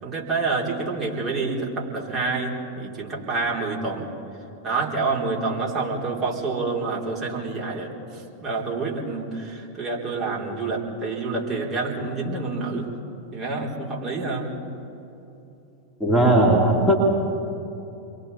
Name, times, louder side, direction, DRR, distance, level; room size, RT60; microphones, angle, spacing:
voice 1, 0.0-4.1 4.6-7.9 8.4-12.9 13.3-14.5, right 3 dB, 30° right, -3 dB, 3.9 m, -27 dB
voice 2, 16.0-17.0, right 1 dB, ahead, -3 dB, 2.8 m, -17 dB
29.5 x 23.0 x 4.3 m, 2.9 s
figure-of-eight pair, 90°, 0 cm